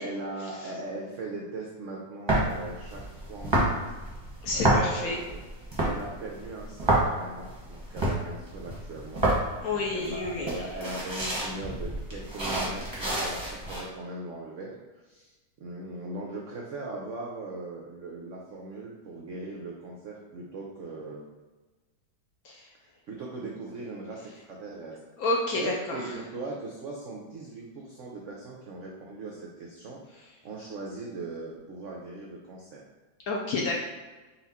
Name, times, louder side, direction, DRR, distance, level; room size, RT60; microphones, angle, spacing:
voice 1, 0.0-3.8 4.5-5.4 5.8-9.3 9.7-21.4 22.7-25.0 25.5-32.8, right 2 dB, 80° right, -1 dB, 0.6 m, -39 dB
sound 1, 2.3-13.8, right 1 dB, 20° right, 0.7 m, -29 dB
voice 2, 4.4-5.2 9.6-10.6 22.4-22.6 25.2-26.1 33.3-33.8, left 2 dB, 65° left, -1 dB, 0.9 m, -29 dB
4.2 x 2.4 x 4.1 m, 1.2 s
omnidirectional pair, 2.0 m